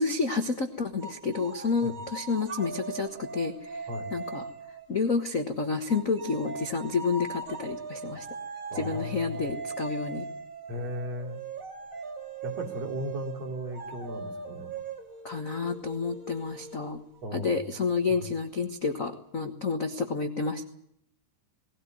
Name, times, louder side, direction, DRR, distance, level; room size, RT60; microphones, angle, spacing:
voice 1, 0.0-4.5 4.9-8.3 8.7-10.2 15.2-17.0 17.3-20.6, left 4 dB, 70° left, 6 dB, 0.7 m, -30 dB
sound 1, 1.0-5.4 5.9-17.2, right 4 dB, 30° right, 1.7 m, -40 dB
voice 2, 8.7-9.5 10.7-11.4 12.4-14.7 17.2-17.7 18.1-18.2, left 1 dB, 50° right, 3 dB, 4.2 m, -36 dB
20.0 x 17.5 x 9.3 m, 0.72 s
omnidirectional pair, 3.8 m